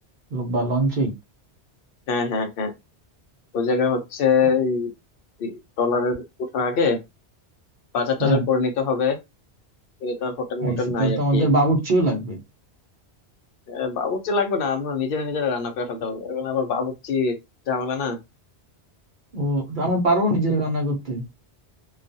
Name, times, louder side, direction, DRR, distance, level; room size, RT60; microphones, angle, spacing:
voice 1, 0.3-1.1 8.2-8.4 10.6-12.4 19.3-21.2, right 1 dB, 50° right, 0.7 m, -22 dB
voice 2, 2.1-2.7 3.5-4.9 5.4-7.0 7.9-9.2 10.0-11.5 13.7-17.3 17.7-18.2, left 5 dB, 60° left, 0.7 m, -24 dB
2.3 x 2.2 x 2.6 m
omnidirectional pair, 1.1 m